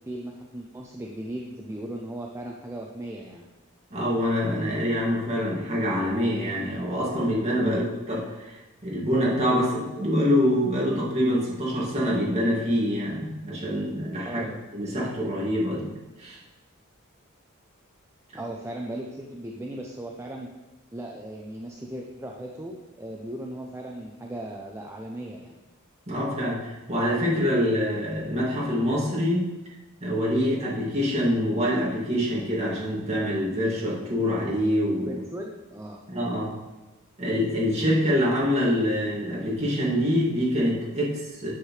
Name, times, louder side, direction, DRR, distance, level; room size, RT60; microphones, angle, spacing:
voice 1, 0.1-3.5 7.6-7.8 14.2-14.6 18.3-20.5 20.9-25.5 35.1-36.0, right 1 dB, 15° right, 0 dB, 0.5 m, -37 dB
voice 2, 3.9-7.8 8.1-14.5 14.7-16.4 26.1-29.5 30.0-35.2 36.1-36.6 37.2-41.5, equal, 30° right, -6 dB, 2.3 m, -25 dB
9.4 x 6.5 x 3.2 m, 1.1 s
head